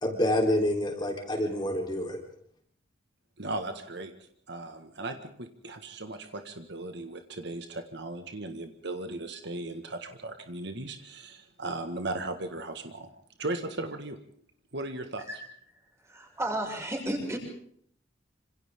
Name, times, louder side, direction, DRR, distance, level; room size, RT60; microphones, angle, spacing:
voice 1, 0.0-2.2, left 1 dB, 20° left, 2 dB, 3.7 m, -27 dB
voice 2, 3.4-4.1 4.5-13.1 13.4-14.2 14.7-15.3, right 2 dB, 60° right, 7 dB, 1.7 m, -37 dB
voice 3, 16.0-17.4, right 1 dB, 15° right, 0 dB, 6.4 m, -32 dB
27.0 x 26.5 x 3.7 m, 0.63 s
head